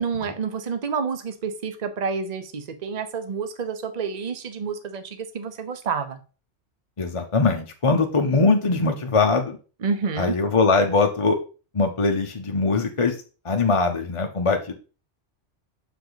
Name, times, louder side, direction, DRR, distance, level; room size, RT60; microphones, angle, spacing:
voice 1, 0.0-6.2 9.8-10.3, right 5 dB, 40° right, 10 dB, 0.8 m, -29 dB
voice 2, 7.0-9.6 10.2-11.4 11.7-13.2 13.4-14.7, left 3 dB, 30° left, 4 dB, 0.7 m, -21 dB
6.9 x 5.0 x 3.9 m, 0.35 s
omnidirectional pair, 1.2 m